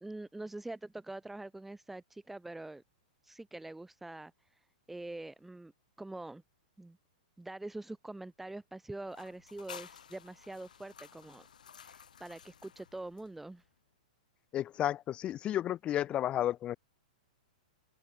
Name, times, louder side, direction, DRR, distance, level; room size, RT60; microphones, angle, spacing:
voice 1, 0.0-2.8 3.2-4.6 4.9-5.7 6.0-6.4 6.8-7.0 7.4-11.5 11.8-13.6, right 2 dB, 5° right, 1.9 m, -44 dB
sound 1, 9.1-13.7, left 8 dB, 85° left, 4.4 m, -53 dB
voice 2, 14.5-16.8, left 12 dB, 25° left, 2.4 m, -32 dB
open air
hypercardioid pair, 135°, 4 cm